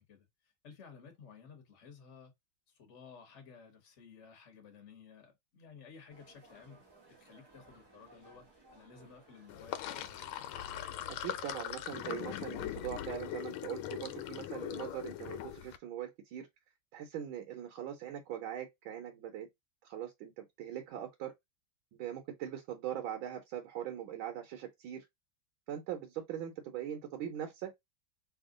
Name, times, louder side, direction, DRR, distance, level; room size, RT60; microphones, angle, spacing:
voice 1, 0.0-2.3 2.7-10.1, left 6 dB, 40° left, 1.3 m, -55 dB
sound 1, 6.1-12.3, right 3 dB, 30° right, 0.4 m, -61 dB
Sink (filling or washing), 9.5-15.8, left 11 dB, 85° left, 1.5 m, -41 dB
voice 2, 11.1-16.5 16.9-19.5 19.8-21.3 21.9-25.1 25.7-27.8, right 10 dB, 75° right, 1.5 m, -41 dB
3.6 x 2.4 x 3.7 m
omnidirectional pair, 2.3 m